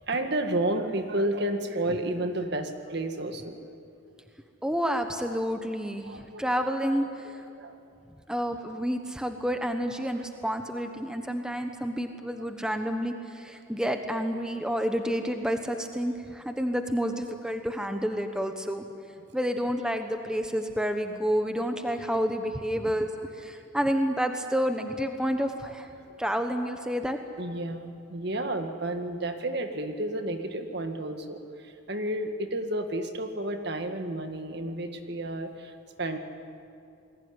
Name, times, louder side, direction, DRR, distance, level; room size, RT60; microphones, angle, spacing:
voice 1, 0.0-3.6 6.0-6.5 7.3-7.8 12.4-12.5 26.1-26.2 26.8-27.1 27.4-36.2, right 1 dB, 55° right, 6 dB, 1.9 m, -31 dB
voice 2, 4.6-7.4 8.3-18.8 19.3-25.9 26.2-27.2, equal, 5° right, 6 dB, 1.1 m, -29 dB
28.0 x 20.5 x 9.8 m, 2.6 s
head